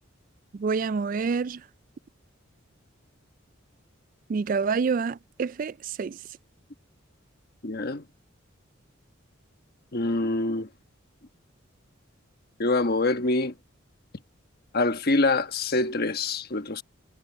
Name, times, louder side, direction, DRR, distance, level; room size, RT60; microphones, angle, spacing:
voice 1, 0.5-1.6 4.3-6.2, right 5 dB, 40° right, 0.3 m, -27 dB
voice 2, 7.6-8.0 9.9-10.7 12.6-13.5 14.7-16.8, left 2 dB, 50° left, 1.2 m, -25 dB
head